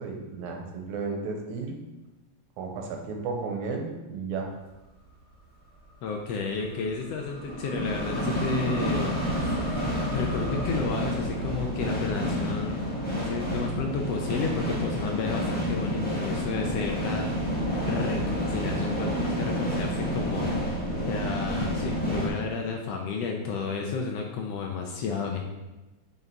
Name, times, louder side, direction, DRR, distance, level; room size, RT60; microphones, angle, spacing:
voice 1, 0.0-1.8 2.6-4.5, right 4 dB, 85° right, 2 dB, 2.3 m, -33 dB
sound 1, 4.9-5.0 6.4-22.3, equal, 10° left, 0.5 m, -29 dB
voice 2, 6.0-12.8 13.2-17.3 17.6-25.4, left 5 dB, 75° left, 2 dB, 1.6 m, -32 dB
6.0 x 5.4 x 4.6 m, 1.1 s
omnidirectional pair, 3.4 m